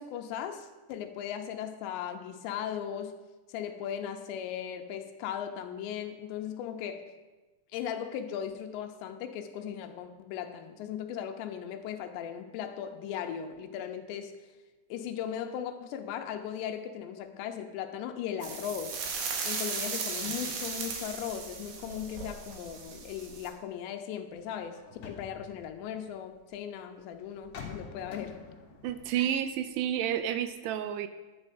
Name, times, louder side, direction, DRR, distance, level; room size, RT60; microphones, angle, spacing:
voice 1, 0.0-3.2 3.5-7.0 7.7-14.4 14.9-19.0 19.4-24.8 25.0-28.5, left 9 dB, 85° left, 6 dB, 2.9 m, -37 dB
sound 1, 18.4-23.5, right 5 dB, 65° right, 3.1 m, -36 dB
sound 2, 24.3-26.5 27.3-30.2 30.5-30.6, left 6 dB, 65° left, 1.6 m, -47 dB
voice 2, 28.8-31.1, right 10 dB, 85° right, 11 dB, 2.4 m, -30 dB
11.5 x 8.8 x 4.9 m, 1.2 s
omnidirectional pair, 5.3 m